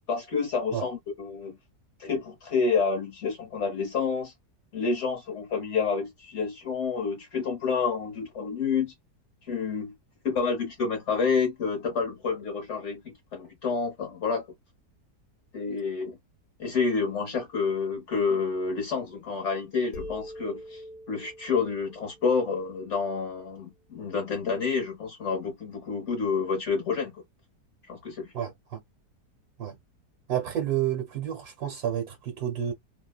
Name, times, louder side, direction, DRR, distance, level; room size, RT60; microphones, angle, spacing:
voice 1, 0.1-1.6 2.0-4.3 4.7-8.9 9.5-9.9 10.2-14.4 15.5-16.2 16.6-20.8 21.1-27.2 27.9-28.3, left 5 dB, 50° left, 1.1 m, -29 dB
sound 1, 19.9-23.5, left 1 dB, 70° left, 1.1 m, -43 dB
voice 2, 28.3-28.8 29.6-29.8 30.3-32.7, right 10 dB, 70° right, 1.2 m, -30 dB
2.8 x 2.1 x 2.3 m
omnidirectional pair, 1.8 m